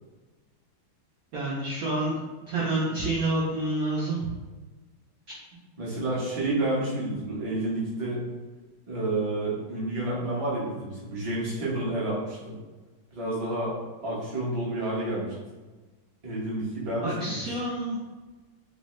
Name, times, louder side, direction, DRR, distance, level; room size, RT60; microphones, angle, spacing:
voice 1, 1.3-2.2 2.5-4.3 17.0-18.0, right 2 dB, 70° right, -5 dB, 0.8 m, -28 dB
voice 2, 5.8-8.2 8.9-12.5 13.1-13.7 14.0-15.3 16.2-17.4, right 2 dB, 30° right, -7 dB, 0.5 m, -29 dB
3.3 x 2.7 x 3.1 m, 1.3 s
omnidirectional pair, 2.2 m